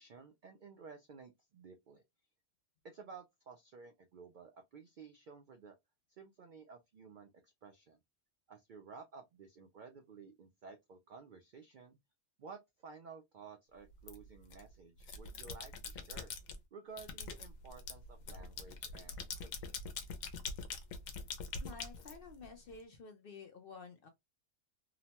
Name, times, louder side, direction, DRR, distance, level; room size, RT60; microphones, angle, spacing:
voice 1, 0.0-2.0 2.8-5.8 6.1-8.0 8.5-12.0 12.4-16.3 16.7-19.8, right 5 dB, 80° right, 0.4 m, -54 dB
sound 1, 14.1-14.6 15.0-16.6 17.0-22.7, left 4 dB, 85° left, 1.0 m, -44 dB
voice 2, 21.6-24.1, left 4 dB, 60° left, 0.6 m, -51 dB
2.9 x 2.1 x 2.8 m
omnidirectional pair, 1.4 m